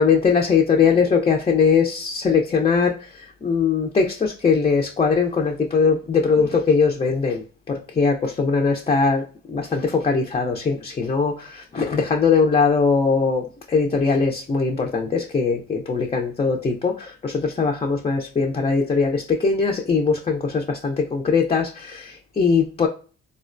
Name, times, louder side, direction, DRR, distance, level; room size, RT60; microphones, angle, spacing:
voice 1, 0.0-22.9, left 5 dB, 20° left, 1 dB, 0.4 m, -21 dB
3.7 x 2.1 x 2.5 m, 0.37 s
cardioid pair, 90°, 30 cm